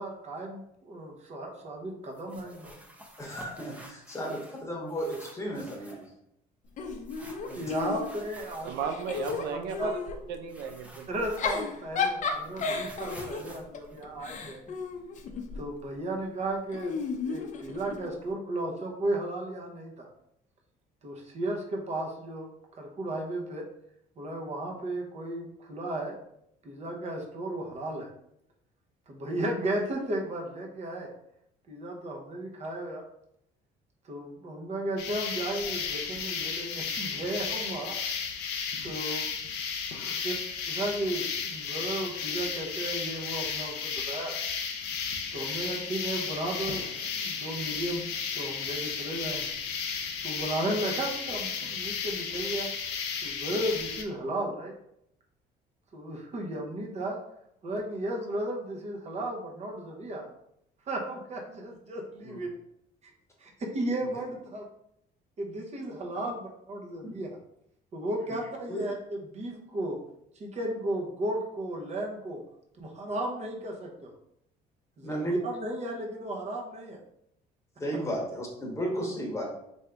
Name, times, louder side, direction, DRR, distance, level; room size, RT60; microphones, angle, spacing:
voice 1, 0.0-2.8 7.6-8.7 9.5-9.9 11.1-14.6 15.5-17.0 17.3-20.1 21.0-22.5 22.8-23.6 24.2-26.2 26.6-28.1 29.1-31.1 31.7-33.0 34.0-38.0 38.8-39.3 40.0-40.3 40.7-44.3 45.3-46.9 47.2-48.0 48.3-49.5 50.2-52.7 53.2-54.7 55.9-57.2 57.6-60.3 60.9-62.5 63.0-63.1 63.4-64.6 65.4-67.3 67.9-70.0 70.4-72.4 72.8-74.1 75.0-77.0, right 1 dB, 40° right, 0 dB, 0.8 m, -34 dB
sound 1, 2.1-4.6 4.9-6.1 7.1-9.6 10.5-11.8 12.1-14.7, equal, 10° right, 0.6 m, -50 dB
voice 2, 3.2-6.0 7.2-7.6 39.9-40.2 62.2-62.4 64.1-64.2 68.3-68.4 68.7-68.8 75.0-75.3 77.8-79.5, equal, 15° left, -1 dB, 1.0 m, -34 dB
Giggle / Chuckle chortle, 6.8-8.4 8.8-10.2 11.2-15.6 16.7-18.1, left 5 dB, 45° left, 0.5 m, -33 dB
voice 3, 8.6-10.0 10.3-11.1, right 6 dB, 80° right, 7 dB, 0.4 m, -35 dB
sound 2, 35.0-54.0, left 6 dB, 85° left, 0.6 m, -34 dB
3.3 x 2.7 x 3.5 m, 0.77 s
cardioid pair, 110°, 17 cm